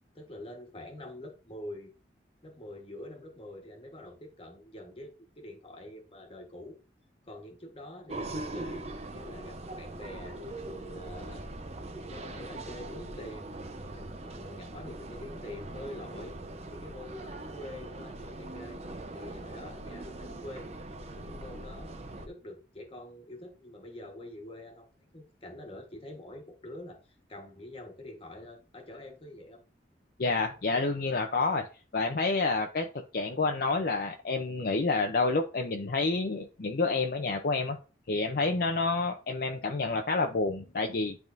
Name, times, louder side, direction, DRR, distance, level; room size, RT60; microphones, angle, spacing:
voice 1, 0.1-1.9 2.4-6.8 7.2-8.9 9.1-10.4 10.7-11.5 12.1-13.5 13.8-16.3 16.7-18.8 19.1-20.7 21.2-27.0 27.3-29.6, left 1 dB, 30° left, 1.3 m, -46 dB
sound 1, 8.1-22.3, right 2 dB, 35° right, 0.6 m, -41 dB
voice 2, 30.2-31.7 31.9-32.9 33.1-37.8 38.1-41.2, left 3 dB, 55° left, 0.6 m, -28 dB
10.5 x 3.6 x 2.6 m
head